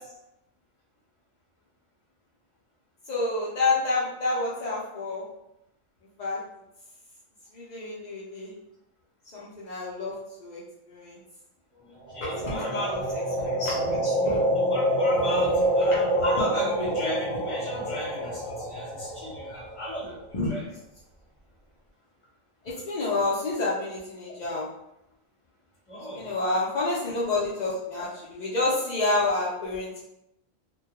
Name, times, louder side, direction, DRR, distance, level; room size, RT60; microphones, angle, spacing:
voice 1, 3.1-5.2 6.2-6.4 7.5-8.5 9.3-10.1 10.4-10.6 10.9-11.2 12.2-14.4 15.9-16.0 20.3-20.5 22.6-24.7 26.1-29.9, left 2 dB, 70° left, -7 dB, 0.4 m, -29 dB
voice 2, 11.7-13.0 14.7-20.2 20.5-20.6 25.9-26.6, left 1 dB, 30° left, -6 dB, 0.7 m, -34 dB
sound 1, 12.1-20.1, equal, 30° right, 0.7 m, -27 dB
2.2 x 2.2 x 2.8 m, 0.83 s
omnidirectional pair, 1.4 m